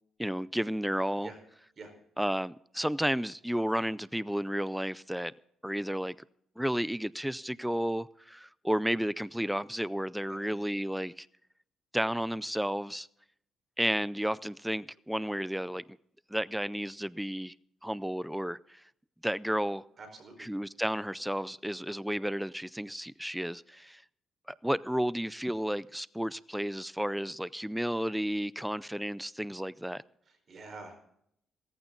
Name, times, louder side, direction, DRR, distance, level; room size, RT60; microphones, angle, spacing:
voice 1, 0.2-1.3 2.2-5.3 5.6-6.2 6.6-11.3 11.9-13.1 13.8-15.8 16.3-17.5 17.8-18.8 19.2-19.8 20.4-24.0 24.5-30.0, equal, 5° right, 0.4 m, -32 dB
voice 2, 10.3-10.6 20.0-20.5 30.3-31.0, right 3 dB, 45° right, 4.7 m, -47 dB
17.0 x 15.0 x 3.9 m
cardioid pair, 90°, 0 cm